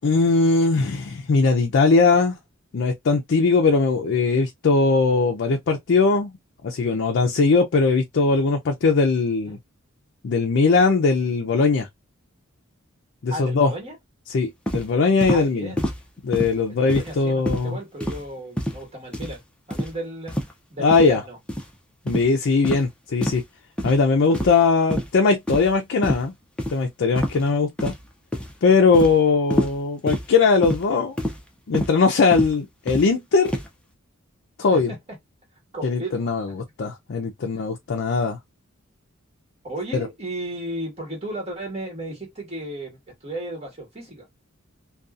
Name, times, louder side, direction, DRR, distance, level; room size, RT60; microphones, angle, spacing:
voice 1, 0.0-2.4 2.7-6.3 6.6-9.6 10.2-11.9 13.2-13.7 14.3-15.7 16.2-17.8 20.8-21.2 22.1-23.4 23.8-26.3 26.7-27.9 28.6-31.2 31.7-33.6 34.6-34.9 35.8-38.4 39.9-40.1, left 4 dB, 60° left, 0.4 m, -20 dB
voice 2, 13.3-13.9 15.3-15.8 16.7-19.4 19.7-20.4 20.7-21.4 34.7-35.0 35.7-36.3 39.6-44.3, right 1 dB, 30° right, 1.4 m, -34 dB
sound 1, 14.7-14.9 15.2-15.4 15.8-16.0 16.3-16.6 16.9-17.2 17.5-17.7 18.0-18.2 18.6-18.8 19.1-19.4 19.7-19.9 20.3-20.5 20.9-21.1 21.5-21.7 22.1-22.3 22.6-22.8 23.2-23.4 23.8-24.0 24.3-24.6 24.9-25.1 25.5-25.7 26.0-26.2 26.6-26.7 27.2-27.4 27.8-28.1 28.3-28.6 28.9-29.1 29.5-29.8 30.1-30.3 30.6-30.8 31.2-31.4 31.7-31.9 32.3-32.5 32.9-33.1 33.4-33.7, equal, 5° left, 0.5 m, -27 dB
2.6 x 2.3 x 2.4 m
head